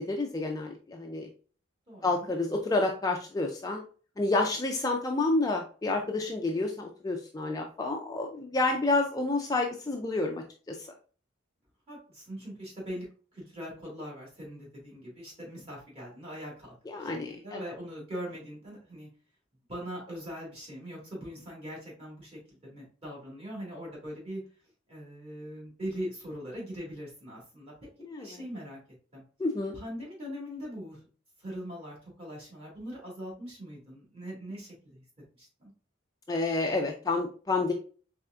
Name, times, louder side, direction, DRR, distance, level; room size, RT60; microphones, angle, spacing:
voice 1, 0.1-1.3 2.0-3.8 4.2-10.9 16.9-17.6 28.0-28.4 29.4-29.8 36.3-37.7, left 2 dB, 20° left, 2 dB, 0.3 m, -29 dB
voice 2, 1.9-2.3 11.9-13.1 13.3-19.1 19.7-24.4 24.9-27.7 28.2-28.8 29.1-29.2 29.7-31.0 31.4-35.0 35.4-35.7, equal, 30° right, -4 dB, 1.8 m, -41 dB
4.4 x 3.4 x 2.4 m, 0.39 s
head